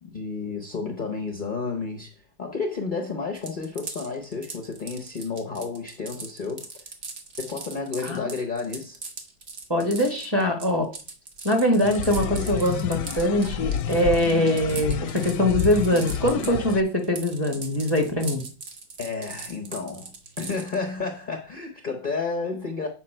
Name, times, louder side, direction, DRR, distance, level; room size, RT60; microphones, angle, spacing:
voice 1, 0.0-6.7 7.4-9.0 19.0-20.1 20.4-22.9, left 4 dB, 55° left, 0.5 m, -31 dB
sound 1, 3.3-16.7 17.0-20.7, right 4 dB, 45° right, 0.9 m, -39 dB
voice 2, 9.7-10.9 11.4-18.4, left 1 dB, 15° right, 0.9 m, -23 dB
sound 2, 11.8-16.8, left 9 dB, 70° left, 1.0 m, -30 dB
7.4 x 4.7 x 4.3 m
omnidirectional pair, 2.1 m